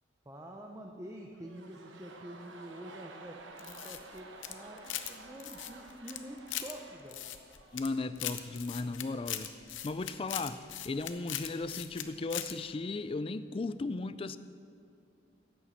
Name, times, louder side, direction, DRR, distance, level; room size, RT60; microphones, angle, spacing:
voice 1, 0.3-7.2, right 1 dB, 15° right, 0.6 m, -47 dB
sound 1, 1.3-9.4 9.7-9.8, right 3 dB, 75° right, 1.1 m, -53 dB
sound 2, 3.6-5.1 5.4-6.7 7.1-7.9 8.2-12.0 12.3-12.5, left 11 dB, 75° left, 0.7 m, -39 dB
voice 2, 7.7-9.5 9.8-14.4, left 3 dB, 30° left, 0.3 m, -36 dB
11.0 x 8.9 x 7.2 m
head